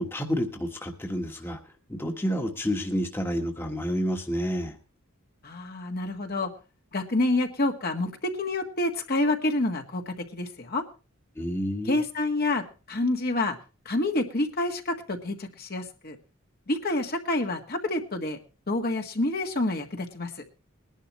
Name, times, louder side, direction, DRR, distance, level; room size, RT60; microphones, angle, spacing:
voice 1, 0.0-1.6 1.9-4.8 11.4-12.0, equal, 10° left, 3 dB, 1.4 m, -29 dB
voice 2, 5.4-6.5 6.9-10.8 11.9-13.6 13.8-16.2 16.7-18.4 18.7-20.3, left 2 dB, 45° left, 4 dB, 1.6 m, -28 dB
21.0 x 11.0 x 3.0 m, 0.32 s
head